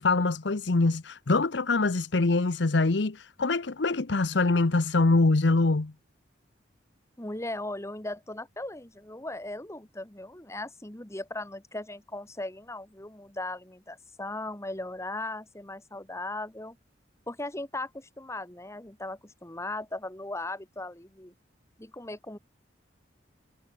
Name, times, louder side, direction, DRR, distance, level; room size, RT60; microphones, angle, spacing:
voice 1, 0.0-5.9, left 3 dB, 70° left, 0.9 m, -24 dB
voice 2, 7.2-16.8 17.3-21.3 21.8-22.4, left 2 dB, 15° left, 1.9 m, -38 dB
head